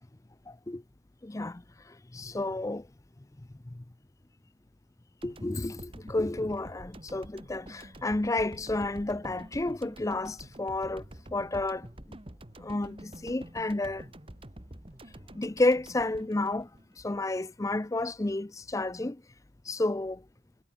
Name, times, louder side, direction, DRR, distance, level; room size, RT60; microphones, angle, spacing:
voice 1, 0.5-0.8 1.2-2.9 3.7-3.8 5.2-11.0 11.3-11.9 12.6-14.1 15.3-16.7 17.0-19.2 19.7-20.2, left 2 dB, 15° left, 0.5 m, -31 dB
sound 1, 5.2-17.4, right 1 dB, 30° right, 2.0 m, -48 dB
head